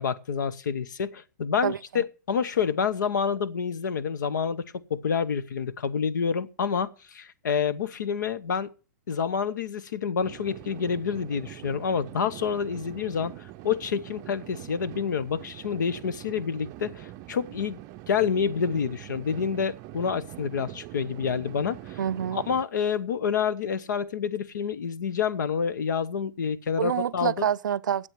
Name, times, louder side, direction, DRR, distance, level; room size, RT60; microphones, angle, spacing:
voice 1, 0.0-8.7 9.1-17.8 18.1-22.0 22.3-27.4, left 6 dB, 85° left, 1.0 m, -28 dB
voice 2, 1.6-2.0 22.0-22.4 26.8-28.1, right 9 dB, 85° right, 0.5 m, -27 dB
sound 1, 10.2-22.6, right 15 dB, 35° right, 0.5 m, -43 dB
9.2 x 7.9 x 7.6 m
hypercardioid pair, 135°, 10 cm